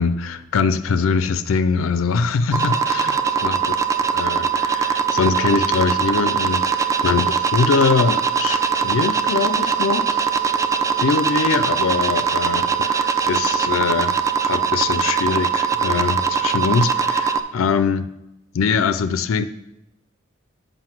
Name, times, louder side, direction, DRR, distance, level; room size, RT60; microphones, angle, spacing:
voice 1, 0.0-3.7 4.0-10.3 11.0-18.1 18.5-19.5, left 5 dB, 85° left, 12 dB, 0.4 m, -22 dB
sound 1, 2.5-17.4, right 6 dB, 15° right, 0.4 m, -21 dB
7.7 x 5.1 x 6.0 m, 0.88 s
head